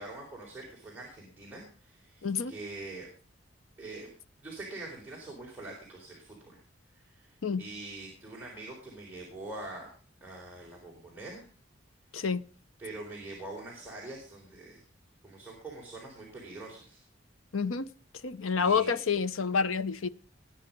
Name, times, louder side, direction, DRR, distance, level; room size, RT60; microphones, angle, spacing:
voice 1, 0.0-3.1 3.8-4.1 4.4-6.6 6.9-9.9 10.2-11.4 12.2-12.3 12.8-14.8 15.2-17.0 18.5-19.0, right 2 dB, 10° right, 4.0 m, -44 dB
voice 2, 2.2-2.5 7.4-7.6 12.1-12.4 17.5-17.9 18.2-20.1, left 5 dB, 85° left, 0.7 m, -28 dB
19.5 x 9.4 x 5.3 m
head